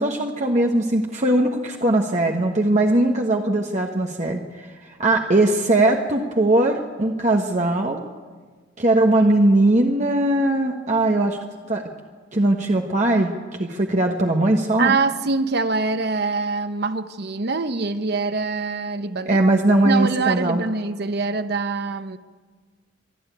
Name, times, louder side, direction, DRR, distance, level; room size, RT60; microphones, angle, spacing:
voice 1, 0.0-8.0 8.8-11.4 11.7-11.8 12.3-13.3 13.6-14.9 19.3-20.6, right 1 dB, 35° right, 1 dB, 1.2 m, -20 dB
voice 2, 14.8-19.4 19.8-22.2, right 4 dB, 55° right, 11 dB, 0.9 m, -24 dB
24.0 x 12.0 x 9.2 m, 1.5 s
head